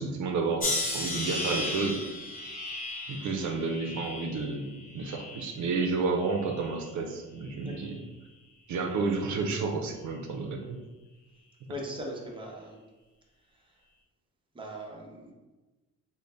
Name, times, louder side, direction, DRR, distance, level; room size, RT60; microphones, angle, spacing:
voice 1, 0.0-2.0 3.1-4.7 4.9-7.9 8.7-10.8, right 4 dB, 75° right, 2 dB, 0.6 m, -31 dB
sound 1, 0.6-5.8 6.2-6.9 7.6-7.9, left 2 dB, 30° left, 0.9 m, -35 dB
voice 2, 7.6-7.9 11.7-12.8 13.5-13.8 14.5-15.3, equal, 15° right, -1 dB, 0.8 m, -40 dB
3.9 x 2.1 x 3.3 m, 1.1 s
cardioid pair, 90°, 30 cm